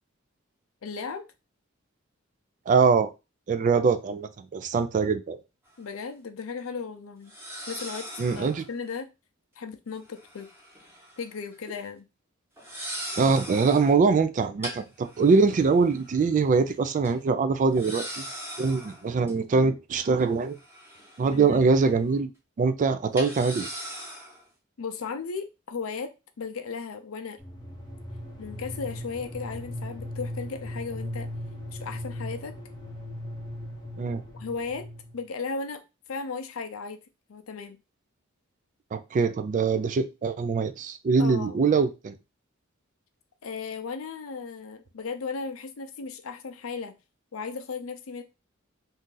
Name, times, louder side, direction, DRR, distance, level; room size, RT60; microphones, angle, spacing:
voice 1, 0.8-1.2 5.8-7.3 7.7-9.1 9.6-10.5 11.2-12.1 21.3-21.7 24.8-27.4 28.4-31.3 31.7-32.5 34.3-35.8 36.1-37.0 37.3-37.8 41.2-41.6 43.4-47.0 47.3-48.2, left 5 dB, 75° left, 0.5 m, -36 dB
voice 2, 2.7-3.1 3.5-5.4 8.2-8.6 13.2-18.3 18.6-20.5 21.2-22.3 22.6-23.7 34.0-34.2 38.9-42.2, right 4 dB, 40° right, 0.3 m, -23 dB
sound 1, 5.7-5.8 7.3-8.7 10.1-11.3 11.5-11.8 12.6-14.0 14.6-16.3 16.7-16.8 17.0-17.1 17.7-19.3 20.2-21.6 21.9-22.1 23.1-24.4, equal, 10° right, 1.0 m, -40 dB
sound 2, 27.4-35.2, left 1 dB, 20° left, 0.6 m, -38 dB
2.8 x 2.5 x 3.7 m
head